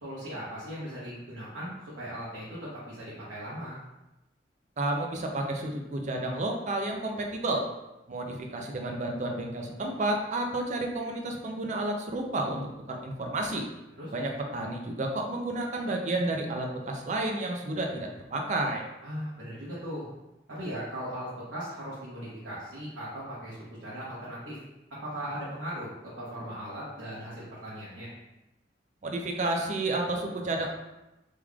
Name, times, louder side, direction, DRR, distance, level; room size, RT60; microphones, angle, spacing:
voice 1, 0.0-3.8 14.0-14.1 19.0-20.1 20.5-24.6 25.0-28.1, equal, 75° right, -9 dB, 1.0 m, -38 dB
voice 2, 4.8-7.6 8.1-12.6 12.9-13.7 14.1-18.9 29.0-30.7, right 2 dB, 40° right, 2 dB, 0.5 m, -31 dB
3.6 x 3.1 x 2.3 m, 0.97 s
head